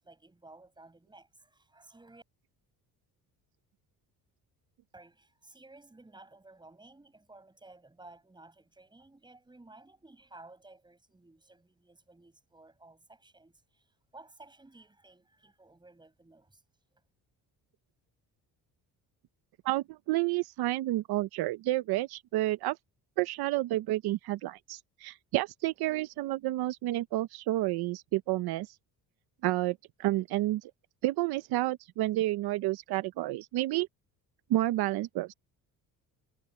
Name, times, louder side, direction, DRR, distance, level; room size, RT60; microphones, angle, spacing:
voice 1, 0.0-2.2 4.9-16.6, right 2 dB, 10° right, 7.3 m, -55 dB
voice 2, 19.6-22.8 23.2-28.7 29.4-30.7 31.0-33.9 34.5-35.3, right 16 dB, 85° right, 0.8 m, -30 dB
cardioid pair, 135°, 37 cm